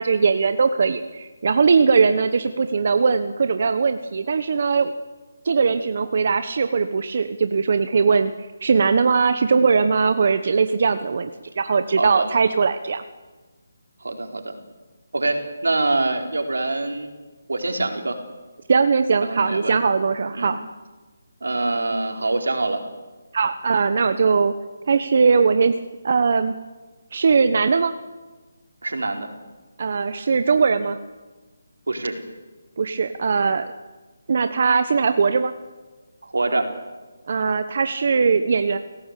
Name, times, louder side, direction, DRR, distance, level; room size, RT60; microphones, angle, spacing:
voice 1, 0.0-4.9 5.4-8.3 8.6-11.3 11.6-13.0 18.7-20.6 23.3-24.5 24.9-25.7 26.0-26.5 27.1-27.9 29.8-31.0 32.8-33.7 34.3-35.5 37.3-38.8, right 5 dB, 50° right, 9 dB, 1.2 m, -20 dB
voice 2, 12.0-12.3 14.0-14.5 15.1-17.1 17.5-18.2 19.2-19.7 20.3-20.5 21.4-22.8 28.8-29.3 31.9-32.2 36.2-36.7, right 2 dB, 90° right, 4 dB, 4.3 m, -24 dB
27.0 x 17.5 x 8.4 m, 1.3 s
hypercardioid pair, 165°, 0 cm